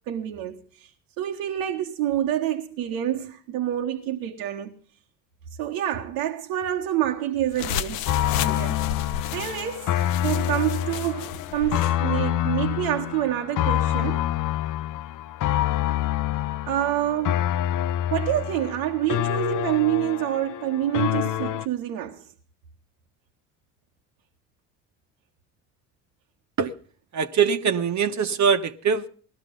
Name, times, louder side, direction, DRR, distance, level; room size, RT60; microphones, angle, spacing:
voice 1, 0.1-0.9 1.2-4.7 5.6-8.1 8.4-8.8 9.3-14.2 16.7-17.5 18.1-22.3, right 12 dB, 80° right, 1.4 m, -27 dB
sound 1, 7.5-12.0, left 9 dB, 85° left, 0.8 m, -33 dB
sound 2, 8.1-21.7, left 13 dB, 55° left, 0.7 m, -26 dB
voice 2, 27.1-29.1, right 6 dB, 45° right, 1.2 m, -22 dB
17.5 x 12.5 x 5.3 m
hypercardioid pair, 65°, 38 cm